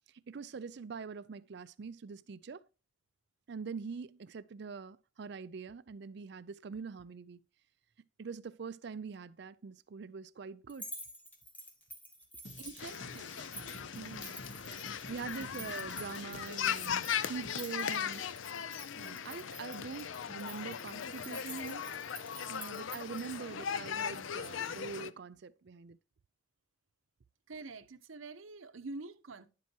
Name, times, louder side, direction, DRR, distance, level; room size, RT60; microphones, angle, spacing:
voice 1, 0.1-2.6 3.5-7.4 8.2-10.9 13.9-14.4 15.1-18.2 18.9-21.9 22.5-26.0, right 5 dB, 55° right, 0.4 m, -44 dB
sound 1, 10.7-23.4, equal, 10° left, 1.6 m, -50 dB
sound 2, 12.4-18.4, left 2 dB, 60° left, 1.7 m, -50 dB
voice 2, 12.6-13.4 27.5-29.5, right 3 dB, 90° right, 0.8 m, -46 dB
sound 3, 12.8-25.1, left 8 dB, 80° left, 0.5 m, -39 dB
10.5 x 7.6 x 2.8 m
head